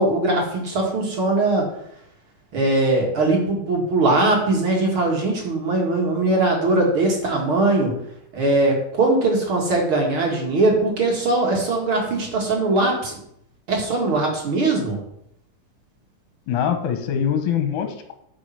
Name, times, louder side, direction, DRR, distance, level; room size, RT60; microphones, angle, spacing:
voice 1, 0.0-1.7 2.5-8.0 8.3-13.2 13.7-15.0, right 2 dB, 45° right, 0 dB, 2.2 m, -20 dB
voice 2, 16.5-18.1, left 8 dB, 75° left, 5 dB, 2.5 m, -23 dB
8.5 x 5.2 x 5.7 m, 0.73 s
omnidirectional pair, 3.8 m